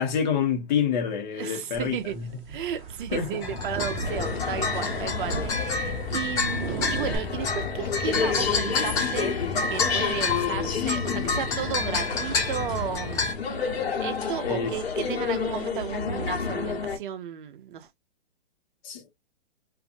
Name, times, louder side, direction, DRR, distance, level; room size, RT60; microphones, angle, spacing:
voice 1, 0.0-2.3 3.1-3.4 14.4-14.7 18.8-19.2, left 7 dB, 45° left, 1.1 m, -27 dB
voice 2, 1.4-2.2 2.5-13.3 14.0-17.9, right 9 dB, 50° right, 0.6 m, -34 dB
sound 1, 1.7-7.2, right 6 dB, 20° right, 1.0 m, -37 dB
sound 2, 3.4-13.3, left 4 dB, 10° left, 0.4 m, -29 dB
sound 3, 4.0-17.0, left 6 dB, 75° left, 1.2 m, -30 dB
2.6 x 2.5 x 2.5 m
hypercardioid pair, 130°, 32 cm